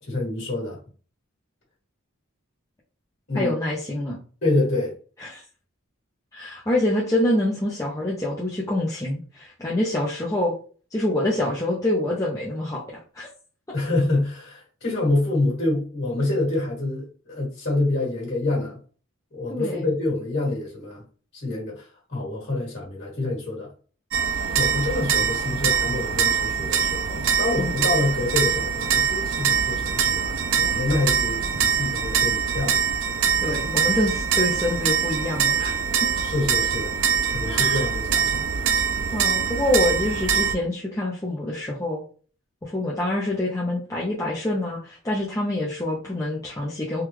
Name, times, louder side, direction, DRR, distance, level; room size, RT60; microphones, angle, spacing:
voice 1, 0.0-0.8 3.3-3.5 4.4-4.9 13.7-18.8 19.3-21.0 21.3-23.7 24.5-32.8 36.2-37.0 37.3-38.5, left 2 dB, 50° left, 1.6 m, -27 dB
voice 2, 3.3-4.2 5.2-5.4 6.3-10.5 10.9-13.3 19.5-19.9 27.6-27.8 33.4-36.1 37.4-37.8 39.1-42.0 42.6-47.0, left 1 dB, 15° left, 0.5 m, -26 dB
sound 1, 24.1-40.5, right 7 dB, 65° right, 0.5 m, -23 dB
3.5 x 2.3 x 3.0 m
head